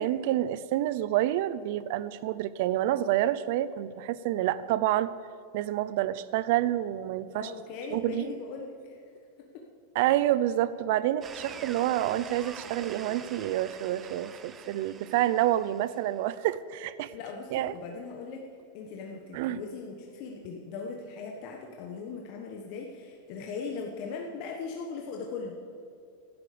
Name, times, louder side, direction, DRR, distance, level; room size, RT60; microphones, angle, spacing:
voice 1, 0.0-5.1 5.5-7.5 7.9-8.3 9.9-17.1 17.5-17.7 19.3-19.6, right 13 dB, 55° right, 16 dB, 0.6 m, -28 dB
voice 2, 7.3-9.0 9.4-9.6 17.1-18.4 18.7-25.6, left 5 dB, 45° left, 1 dB, 1.3 m, -39 dB
sound 1, 11.2-16.2, right 6 dB, 20° right, 0.6 m, -45 dB
17.0 x 11.0 x 5.1 m, 2.5 s
supercardioid pair, 160°, 0 cm